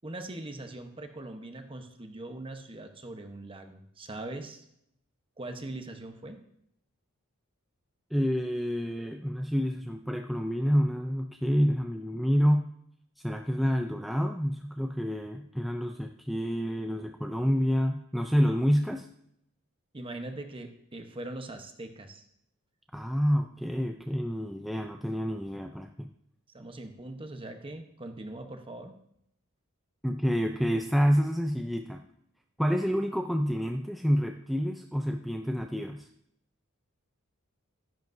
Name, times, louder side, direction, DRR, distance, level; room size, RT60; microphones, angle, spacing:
voice 1, 0.0-4.6 5.4-6.4 19.9-22.2 26.5-29.0, right 2 dB, 25° right, 6 dB, 0.9 m, -41 dB
voice 2, 8.1-12.6 13.2-19.1 22.9-26.1 30.0-32.0 32.6-36.1, equal, ahead, 3 dB, 0.4 m, -28 dB
12.0 x 10.5 x 2.6 m, 0.74 s
head